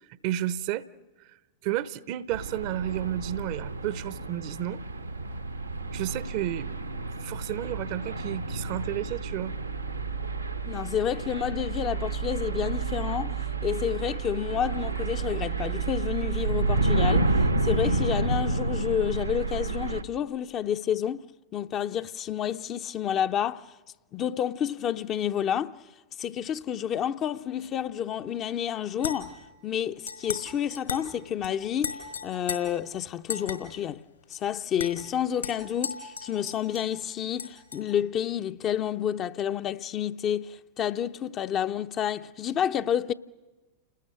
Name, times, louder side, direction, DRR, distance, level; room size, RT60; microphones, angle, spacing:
voice 1, 0.1-0.8 1.6-4.8 5.9-6.7 7.2-9.5, right 13 dB, 45° right, 0.8 m, -32 dB
sound 1, 2.3-20.0, right 3 dB, 85° right, 1.4 m, -30 dB
voice 2, 10.6-21.2 21.5-23.6 24.1-25.7 26.2-29.4 29.6-34.0 34.3-43.1, left 9 dB, 30° left, 0.7 m, -29 dB
sound 2, 29.0-29.5 30.1-30.4 30.7-31.1 31.4-31.5 31.8-32.6 33.3-33.6 34.3-34.4 34.8-34.9 35.4-36.9 37.4-37.8, left 6 dB, 75° left, 4.4 m, -35 dB
29.5 x 20.0 x 7.7 m
figure-of-eight pair, 90°, 0 cm